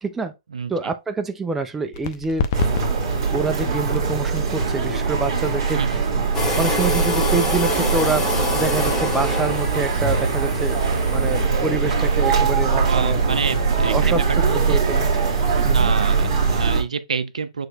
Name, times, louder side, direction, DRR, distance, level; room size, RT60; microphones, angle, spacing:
voice 1, 0.0-0.3 0.7-2.5 3.3-5.8 6.6-8.3 8.5-13.2 13.8-14.2 14.5-15.1 15.6-15.9, right 4 dB, 10° right, 0.4 m, -26 dB
voice 2, 0.5-0.9 5.7-6.0 12.9-14.1 14.4-14.8 15.7-17.7, right 5 dB, 70° right, 0.6 m, -28 dB
sound 1, 1.9-9.3, left 5 dB, 35° left, 0.6 m, -32 dB
sound 2, 2.5-16.8, right 5 dB, 40° right, 1.5 m, -21 dB
sound 3, 6.3-11.4, left 1 dB, 10° left, 1.3 m, -25 dB
6.3 x 3.1 x 2.3 m
figure-of-eight pair, 130°, 4 cm